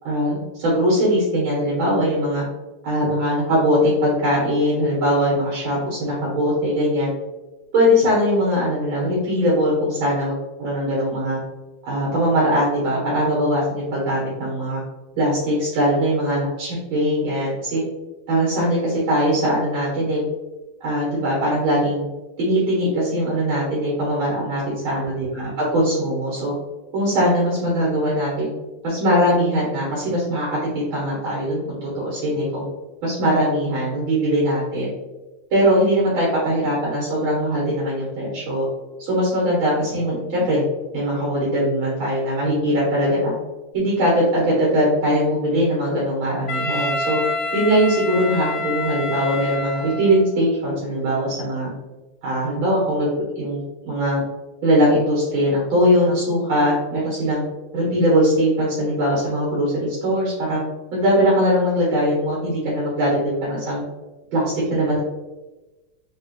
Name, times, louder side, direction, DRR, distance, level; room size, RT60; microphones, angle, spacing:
voice 1, 0.0-2.4 2.8-7.1 7.7-11.4 11.8-14.8 15.2-17.8 18.3-20.2 20.8-22.1 22.4-26.5 26.9-28.5 28.8-32.7 33.0-34.9 35.5-38.7 39.0-40.6 40.9-43.3 43.7-47.2 47.5-51.7 52.2-54.2 54.6-57.4 57.7-60.6 60.9-63.8 64.3-65.0, equal, 70° right, -6 dB, 2.1 m, -21 dB
Wind instrument woodwind instrument, 46.5-50.3, left 1 dB, 90° left, 1.6 m, -27 dB
4.6 x 3.0 x 2.9 m, 1.1 s
omnidirectional pair, 2.3 m